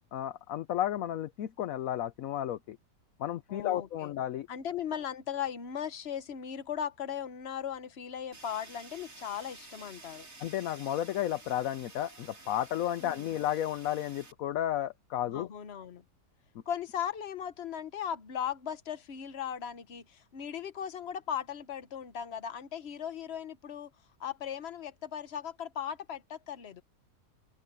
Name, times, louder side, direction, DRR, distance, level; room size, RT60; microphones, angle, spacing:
voice 1, 0.1-2.8 3.2-4.5 10.4-15.5, left 12 dB, 65° left, 0.9 m, -33 dB
voice 2, 3.5-4.1 4.5-10.3 13.0-13.3 15.3-16.0 16.7-23.9 24.2-26.8, left 8 dB, 40° left, 1.2 m, -38 dB
Fire, 8.3-14.3, right 3 dB, 50° right, 4.2 m, -52 dB
omnidirectional pair, 1.9 m